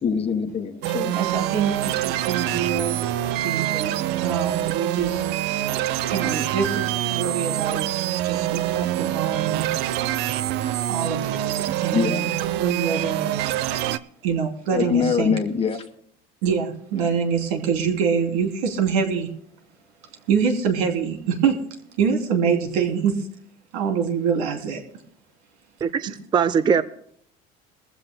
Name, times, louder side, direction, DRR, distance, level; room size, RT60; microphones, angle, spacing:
voice 1, 0.0-1.1 3.9-4.0 11.9-12.2 14.7-15.8, left 6 dB, 30° left, 9 dB, 1.4 m, -24 dB
sound 1, 0.8-14.0, right 13 dB, 65° right, 0.7 m, -25 dB
voice 2, 1.1-3.0 3.2-5.7 6.1-7.9 8.2-9.7 10.9-13.3 13.8-13.9 14.2-15.3 16.4-19.3 20.3-21.6 22.0-23.2 23.7-24.8 26.1-26.2, right 6 dB, 90° right, 3 dB, 3.1 m, -25 dB
voice 3, 25.8-26.8, right 6 dB, 25° right, 13 dB, 0.5 m, -21 dB
22.0 x 15.5 x 2.2 m, 0.67 s
cardioid pair, 130°, 18 cm